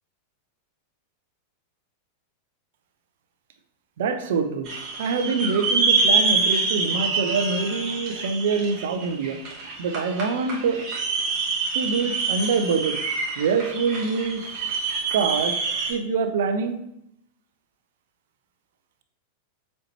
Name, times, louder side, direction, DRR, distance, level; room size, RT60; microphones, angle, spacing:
voice 1, 4.0-4.7 5.0-9.4 9.8-10.8 11.7-13.0 13.4-15.5 15.9-16.8, right 5 dB, 55° right, 7 dB, 0.7 m, -25 dB
sound 1, 4.7-15.9, right 4 dB, 35° right, 1.9 m, -26 dB
7.5 x 4.5 x 3.0 m, 0.77 s
figure-of-eight pair, 90°, 0 cm